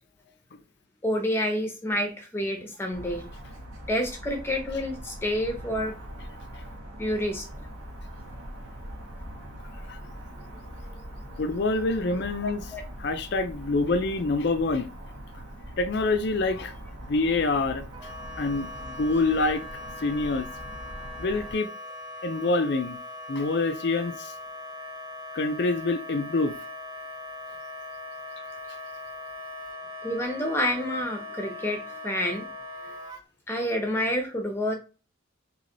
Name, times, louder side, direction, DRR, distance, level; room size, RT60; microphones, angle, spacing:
voice 1, 1.0-3.3 3.9-5.9 7.0-7.6 12.7-12.8 30.0-32.4 32.8-32.9 33.5-34.7, equal, 10° left, 0.8 m, -28 dB
sound 1, 2.9-21.5, equal, 75° right, 1.1 m, -42 dB
voice 2, 11.4-12.7 13.0-14.9 15.8-16.7 17.1-17.9 18.4-19.6 20.0-20.5 21.2-21.7 22.2-23.0 23.3-24.3 25.3-26.5, left 3 dB, 50° left, 0.4 m, -26 dB
Wind instrument woodwind instrument, 17.9-33.2, left 1 dB, 20° right, 0.6 m, -40 dB
3.2 x 3.0 x 3.9 m
head